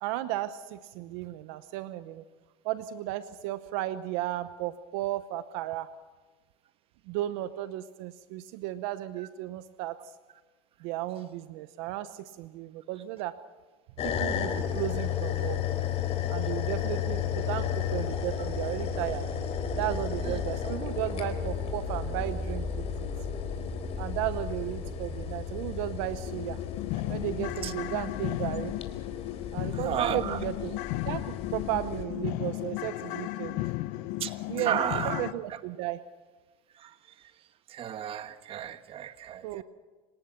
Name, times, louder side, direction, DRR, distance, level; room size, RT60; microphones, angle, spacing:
voice 1, 0.0-2.2 2.6-5.9 7.1-10.0 10.8-13.4 14.0-15.6 16.3-19.3 19.7-23.1 24.0-26.6 27.1-28.7 29.5-33.6 34.5-34.8 35.0-36.0 39.4-39.6, right 14 dB, 75° right, 0.8 m, -34 dB
sound 1, 14.0-32.0, left 8 dB, 50° left, 3.8 m, -33 dB
sound 2, 17.1-26.2, equal, 10° left, 3.3 m, -41 dB
sound 3, 25.3-25.4 25.8-25.9 26.3-35.3, left 18 dB, 75° left, 0.8 m, -35 dB
voice 2, 29.7-30.4 34.2-35.2 35.5-35.6 36.8-36.9 37.7-39.6, right 10 dB, 45° right, 1.4 m, -33 dB
27.5 x 18.0 x 5.9 m
supercardioid pair, 110°, 13 cm